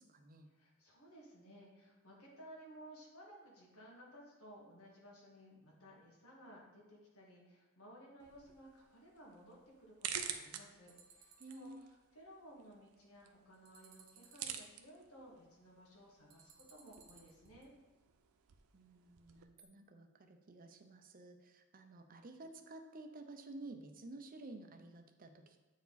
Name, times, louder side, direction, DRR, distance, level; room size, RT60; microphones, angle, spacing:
voice 1, 0.0-0.5 11.4-11.8 18.7-25.7, right 2 dB, 40° right, 6 dB, 0.6 m, -53 dB
voice 2, 0.6-11.9 12.1-17.7, equal, 85° left, -3 dB, 1.9 m, -58 dB
sound 1, 8.2-19.4, right 8 dB, 90° right, 0.6 m, -50 dB
sound 2, 10.9-11.7 13.5-14.7 16.3-17.7 19.6-19.7, right 6 dB, 70° right, 1.0 m, -63 dB
8.1 x 4.7 x 4.0 m, 1.1 s
head